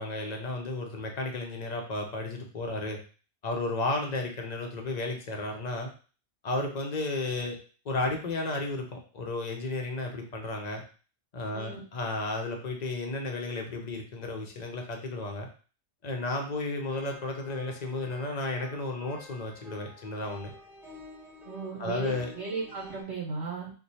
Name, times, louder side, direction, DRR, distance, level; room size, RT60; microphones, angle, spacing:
voice 1, 0.0-3.0 3.4-5.9 6.4-7.6 7.8-10.8 11.3-15.5 16.0-20.5 21.8-22.3, left 2 dB, 45° left, 2 dB, 0.5 m, -33 dB
sound 1, 16.8-23.0, equal, ahead, 0.6 m, -50 dB
voice 2, 21.4-23.7, right 4 dB, 55° right, -3 dB, 1.3 m, -36 dB
3.1 x 2.2 x 4.0 m, 0.38 s
omnidirectional pair, 1.4 m